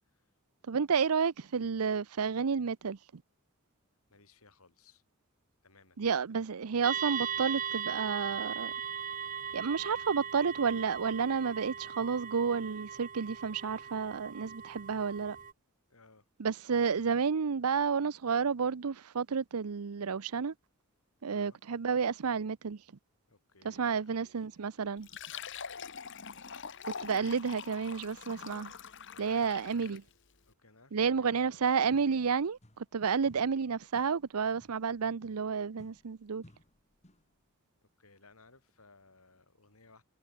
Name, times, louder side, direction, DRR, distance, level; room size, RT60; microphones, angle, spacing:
voice 1, 0.7-3.2 6.0-8.7 9.5-15.4 16.4-20.5 21.2-22.8 23.6-25.1 26.8-28.7 29.2-30.0 30.9-36.4, right 6 dB, 85° right, 0.6 m, -31 dB
voice 2, 4.1-5.0 5.6-6.0 15.9-16.3 21.3-21.6 23.3-25.9 29.1-30.0 30.5-31.8 33.0-33.3 37.8-40.0, left 3 dB, 80° left, 4.5 m, -62 dB
sound 1, 6.8-15.5, right 7 dB, 40° right, 1.5 m, -38 dB
Fill (with liquid), 25.0-30.1, left 6 dB, 55° left, 1.8 m, -44 dB
sound 2, 31.9-33.0 33.3-37.4, equal, 30° left, 3.4 m, -61 dB
head